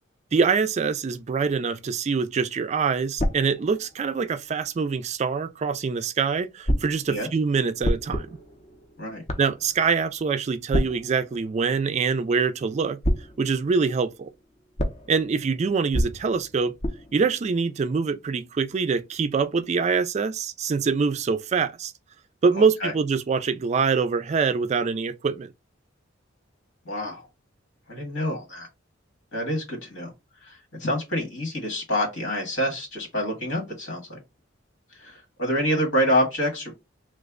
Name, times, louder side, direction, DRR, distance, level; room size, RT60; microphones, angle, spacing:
voice 1, 0.3-8.3 9.4-13.0 13.4-14.3 15.1-16.7 17.1-21.9 22.4-25.5, right 5 dB, 35° right, 0.3 m, -24 dB
sound 1, 3.2-5.1 6.7-12.7 13.0-18.5, equal, 35° left, 0.6 m, -32 dB
voice 2, 22.6-22.9 26.8-27.3 27.9-28.7 29.3-30.1 30.4-34.2 34.9-36.8, equal, 80° left, 1.8 m, -27 dB
3.2 x 2.1 x 3.6 m
head